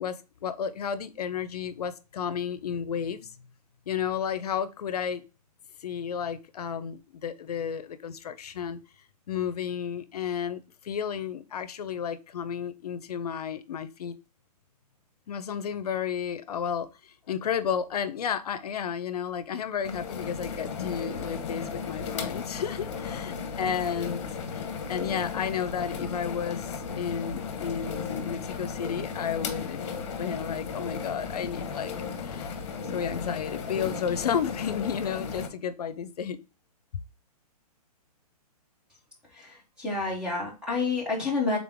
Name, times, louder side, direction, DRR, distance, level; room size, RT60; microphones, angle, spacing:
voice 1, 0.0-3.3 3.9-5.2 5.8-8.8 9.3-14.1 15.3-16.9 17.3-24.2 24.9-29.8 30.2-31.9 32.2-32.6 32.9-36.4, left 8 dB, 70° left, 0.6 m, -32 dB
sound 1, 19.8-35.5, left 5 dB, 45° left, 0.9 m, -35 dB
voice 2, 39.4-41.6, left 3 dB, 5° right, 0.6 m, -29 dB
3.7 x 3.7 x 3.4 m
hypercardioid pair, 170°, 20 cm